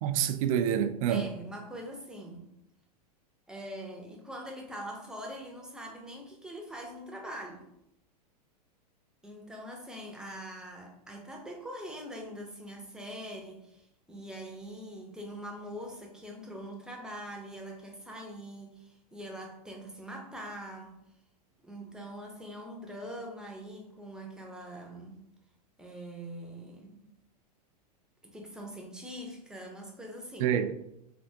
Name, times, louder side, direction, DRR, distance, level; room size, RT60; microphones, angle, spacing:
voice 1, 0.0-1.3 30.4-30.7, right 9 dB, 60° right, 0.4 m, -27 dB
voice 2, 1.1-2.5 3.5-7.7 9.2-21.0 21.6-25.2 25.8-27.1 28.2-30.5, equal, 5° right, 0.6 m, -43 dB
3.4 x 2.6 x 2.7 m
hypercardioid pair, 110°, 21 cm